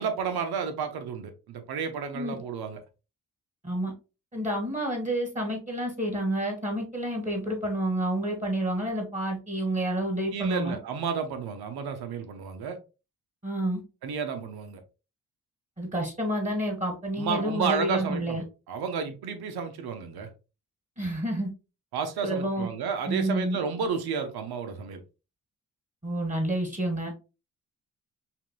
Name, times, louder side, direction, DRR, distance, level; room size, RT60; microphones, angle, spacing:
voice 1, 0.0-2.8 10.3-12.8 14.0-14.8 17.2-20.3 21.9-25.0, right 6 dB, 75° right, 7 dB, 0.9 m, -31 dB
voice 2, 4.3-10.8 13.4-13.8 15.8-18.4 21.0-21.5 22.2-22.7 23.1-23.6 26.0-27.1, right 1 dB, 20° right, 2 dB, 1.9 m, -29 dB
5.7 x 2.6 x 2.2 m, 0.30 s
supercardioid pair, 50°, 38 cm